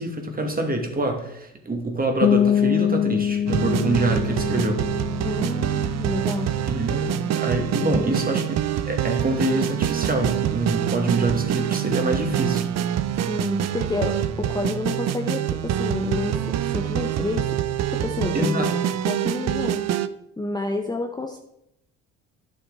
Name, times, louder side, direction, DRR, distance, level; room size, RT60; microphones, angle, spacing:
voice 1, 0.0-4.9 6.7-8.6 8.9-12.7 18.3-18.7, right 2 dB, 25° right, 3 dB, 2.3 m, -25 dB
sound 1, 2.2-7.8, left 9 dB, 25° left, 0.3 m, -25 dB
sound 2, 3.5-20.1, right 10 dB, 45° right, 0.7 m, -25 dB
voice 2, 5.2-6.5 7.8-8.2 13.3-17.6 17.9-18.7 19.0-19.8 20.4-21.4, left 2 dB, 10° left, 2 dB, 0.9 m, -29 dB
11.0 x 7.0 x 4.0 m, 0.82 s
hypercardioid pair, 60°, 38 cm